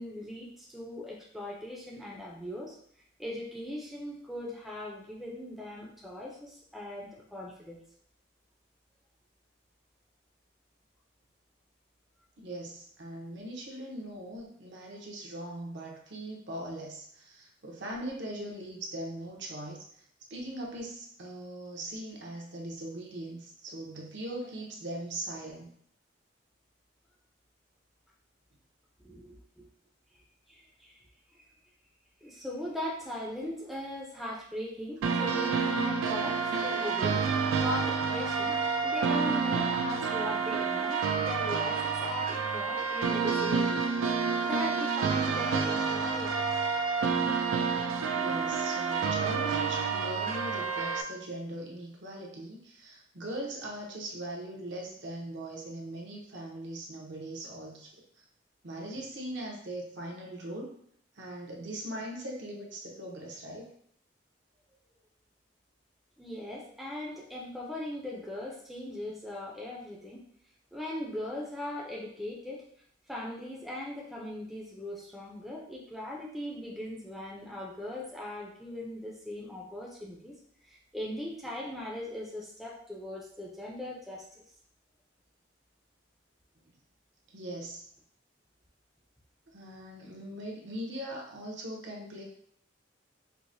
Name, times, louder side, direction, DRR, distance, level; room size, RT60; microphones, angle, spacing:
voice 1, 0.0-2.8 3.2-7.8 29.0-29.7 30.1-30.2 30.5-31.0 31.3-31.4 32.2-38.6 38.8-43.8 44.1-46.4 66.2-70.2 70.7-72.6 73.1-80.3 80.6-84.4, left 1 dB, ahead, -4 dB, 0.4 m, -39 dB
voice 2, 12.4-19.8 20.3-25.7 48.1-57.9 58.6-60.7 61.2-63.7 86.6-86.7 87.3-87.8 89.5-92.2, right 1 dB, 65° right, -1 dB, 0.8 m, -40 dB
sound 1, 35.0-51.0, right 5 dB, 90° right, 0.3 m, -29 dB
4.7 x 2.1 x 2.6 m, 0.66 s
head